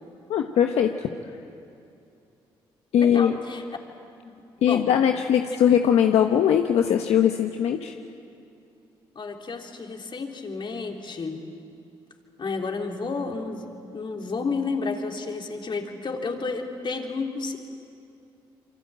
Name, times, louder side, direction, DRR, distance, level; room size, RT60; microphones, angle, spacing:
voice 1, 0.3-1.1 2.9-3.3 4.6-7.9, left 9 dB, 75° left, 4 dB, 1.1 m, -20 dB
voice 2, 3.0-3.6 4.2-4.9 9.2-11.4 12.4-13.7 13.9-17.6, left 4 dB, 45° left, 2 dB, 3.7 m, -31 dB
27.5 x 24.0 x 8.9 m, 2.6 s
supercardioid pair, 60°, 11 cm